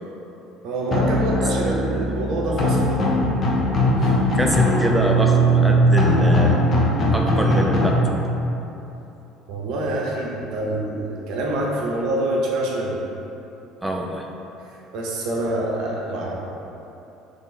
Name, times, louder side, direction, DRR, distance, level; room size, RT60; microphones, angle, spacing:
voice 1, 0.6-3.0 4.0-4.1 9.5-13.0 14.7-16.3, right 1 dB, 55° right, -3 dB, 0.7 m, -26 dB
sound 1, 0.9-7.9, equal, 40° left, 0.8 m, -19 dB
voice 2, 1.6-2.1 2.5-2.6 4.3-6.6 7.1-8.0 13.8-14.3, right 1 dB, 5° right, 0 dB, 0.5 m, -25 dB
3.6 x 3.2 x 4.1 m, 3.0 s
figure-of-eight pair, 60°, 0 cm